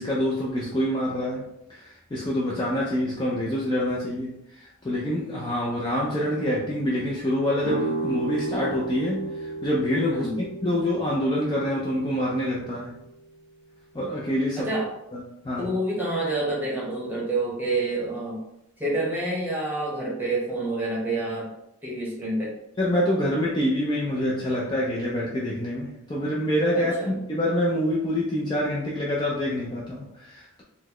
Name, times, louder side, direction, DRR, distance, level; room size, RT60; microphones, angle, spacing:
voice 1, 0.0-10.3 10.6-13.0 13.9-14.7 15.1-15.7 22.8-30.6, left 1 dB, 20° left, -5 dB, 0.4 m, -26 dB
sound 1, 7.6-13.4, right 3 dB, 80° right, 0.5 m, -34 dB
voice 2, 14.6-14.9 15.6-18.4 18.8-21.5 21.8-22.5 26.7-27.1, right 2 dB, 10° right, -5 dB, 0.9 m, -28 dB
3.9 x 2.1 x 3.0 m, 0.82 s
head